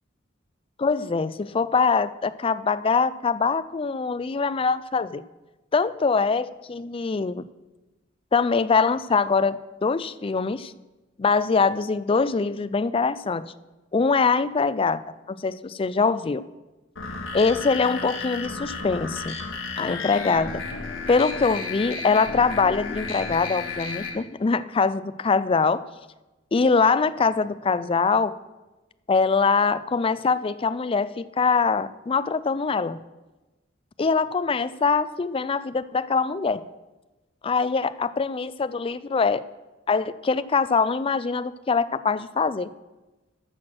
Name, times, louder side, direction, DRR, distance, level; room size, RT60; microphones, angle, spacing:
voice 1, 0.8-5.2 5.7-7.5 8.3-10.7 11.2-13.5 13.9-15.0 15.3-16.4 17.3-19.4 19.8-20.6 21.1-25.8 26.5-28.4 29.1-33.0 34.0-36.7 37.4-39.4 39.9-42.7, left 4 dB, 25° left, 14 dB, 0.4 m, -23 dB
sound 1, 17.0-24.1, left 4 dB, 85° left, 1.6 m, -33 dB
13.5 x 6.0 x 6.3 m, 1.1 s
head